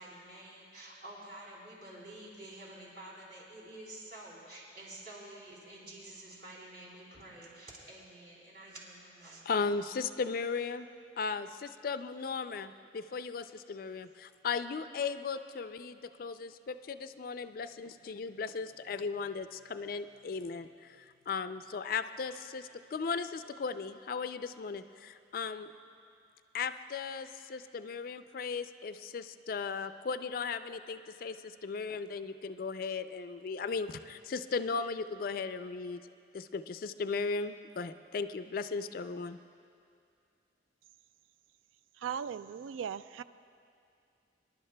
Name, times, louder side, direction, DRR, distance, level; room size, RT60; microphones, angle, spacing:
voice 1, 0.0-9.4, right 1 dB, 50° right, -5 dB, 3.4 m, -49 dB
voice 2, 9.5-10.9 11.2-25.7 26.5-36.0 36.3-39.4, left 5 dB, 50° left, 11 dB, 0.3 m, -37 dB
voice 3, 42.0-43.2, right 8 dB, 90° right, 14 dB, 0.3 m, -38 dB
25.0 x 11.5 x 2.2 m, 2.4 s
head